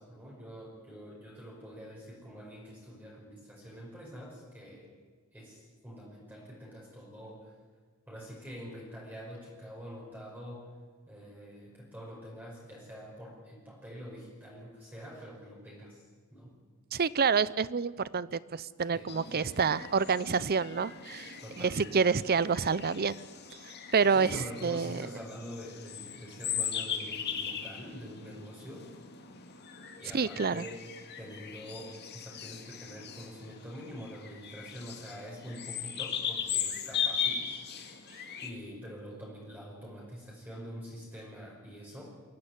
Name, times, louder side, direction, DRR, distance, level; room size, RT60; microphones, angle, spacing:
voice 1, 0.0-4.9 5.3-7.5 8.1-10.7 11.1-16.0 16.3-16.5 18.9-19.5 21.4-22.0 24.1-28.9 30.0-30.8 31.2-37.9 38.4-42.0, equal, 10° right, -4 dB, 5.7 m, -46 dB
voice 2, 16.9-23.2 23.6-25.0 30.1-30.7, right 5 dB, 45° right, 19 dB, 0.6 m, -28 dB
sound 1, 19.1-38.5, left 8 dB, 50° left, 2.5 m, -39 dB
23.5 x 16.5 x 9.6 m, 1.5 s
head